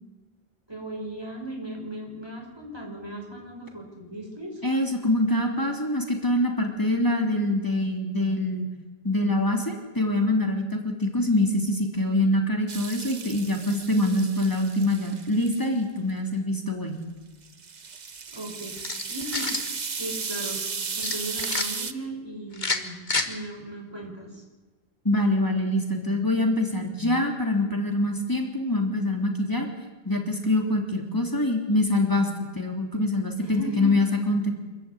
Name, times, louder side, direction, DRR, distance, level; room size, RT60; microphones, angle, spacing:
voice 1, 0.7-4.6 18.3-18.8 19.1-19.5 19.9-20.6 20.9-23.0 23.2-24.4 33.4-33.9, right 1 dB, 25° right, 1 dB, 5.7 m, -37 dB
voice 2, 4.6-8.7 9.0-17.0 25.0-29.7 30.0-34.5, left 1 dB, 20° left, 3 dB, 3.1 m, -25 dB
sound 1, 12.7-15.7 17.4-21.9, right 5 dB, 45° right, 1.1 m, -35 dB
sound 2, 18.8-19.7 21.0-21.7 22.5-23.3, left 3 dB, 50° left, 1.8 m, -28 dB
26.0 x 15.0 x 9.9 m, 1.2 s
omnidirectional pair, 1.0 m